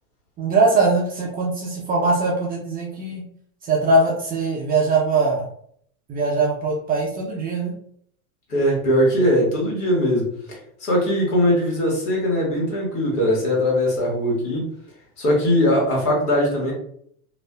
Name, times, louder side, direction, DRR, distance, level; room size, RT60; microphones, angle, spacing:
voice 1, 0.4-3.2 3.6-5.5 6.1-7.7, right 3 dB, 20° right, -2 dB, 0.3 m, -21 dB
voice 2, 8.5-14.6 15.2-16.7, equal, 75° left, -3 dB, 1.4 m, -20 dB
2.5 x 2.3 x 2.2 m, 0.64 s
hypercardioid pair, 100°, 46 cm